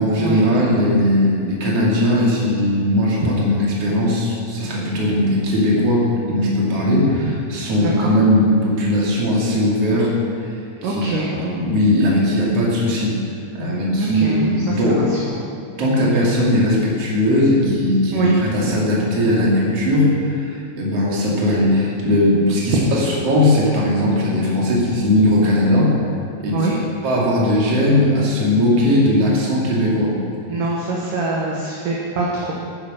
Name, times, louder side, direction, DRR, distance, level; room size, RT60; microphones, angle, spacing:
voice 1, 0.0-10.1 10.8-13.2 13.5-15.0 15.8-25.9 26.4-26.7 27.0-30.1, left 1 dB, 40° right, -4 dB, 3.1 m, -18 dB
voice 2, 7.8-8.1 10.8-11.6 14.0-15.5 18.1-18.4 26.5-26.8 30.5-32.5, right 2 dB, 60° right, -4 dB, 2.5 m, -24 dB
11.5 x 9.6 x 6.5 m, 2.5 s
omnidirectional pair, 4.9 m